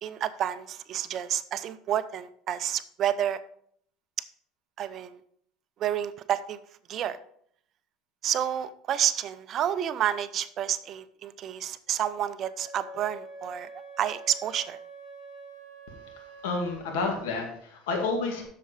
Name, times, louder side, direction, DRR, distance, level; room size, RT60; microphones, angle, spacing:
voice 1, 0.0-3.4 4.8-5.2 5.8-6.6 6.9-7.2 8.2-13.7 14.0-14.8, right 10 dB, 45° right, 13 dB, 0.6 m, -29 dB
Wind instrument woodwind instrument, 12.4-16.9, right 2 dB, 45° left, 1.8 m, -46 dB
voice 2, 15.9-18.4, left 3 dB, 85° left, 2 dB, 2.2 m, -31 dB
7.7 x 6.7 x 5.0 m, 0.65 s
supercardioid pair, 125°, 0 cm